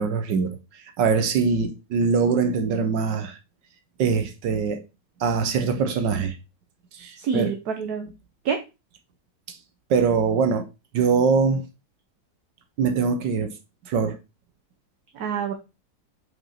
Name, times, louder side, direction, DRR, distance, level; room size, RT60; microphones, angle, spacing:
voice 1, 0.0-3.4 4.0-4.8 5.2-6.4 6.9-7.5 9.5-9.6 9.9-10.7 10.9-11.7 12.8-13.5 13.9-14.2, right 5 dB, 75° right, 1.5 m, -23 dB
voice 2, 7.2-8.1 8.4-8.6 15.1-15.5, right 5 dB, 60° right, 1.4 m, -27 dB
6.0 x 5.3 x 5.6 m
omnidirectional pair, 2.0 m